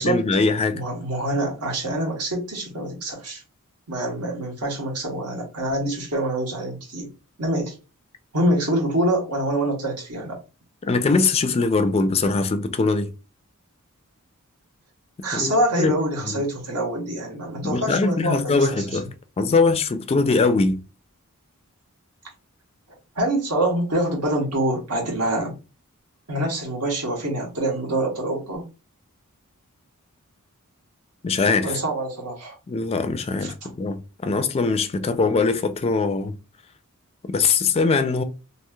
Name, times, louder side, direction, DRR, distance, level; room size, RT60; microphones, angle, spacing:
voice 1, 0.0-0.8 10.8-13.1 15.2-15.5 15.8-15.9 16.2-16.4 17.6-19.1 19.4-20.8 31.2-31.8 32.7-36.3 37.2-38.2, left 4 dB, 25° left, 0.3 m, -22 dB
voice 2, 0.7-3.4 3.9-7.1 7.4-7.8 8.3-10.4 15.2-19.0 23.1-25.5 26.3-28.6 31.6-32.6 33.4-33.7, right 1 dB, 85° right, 1.2 m, -25 dB
3.0 x 2.7 x 2.2 m
head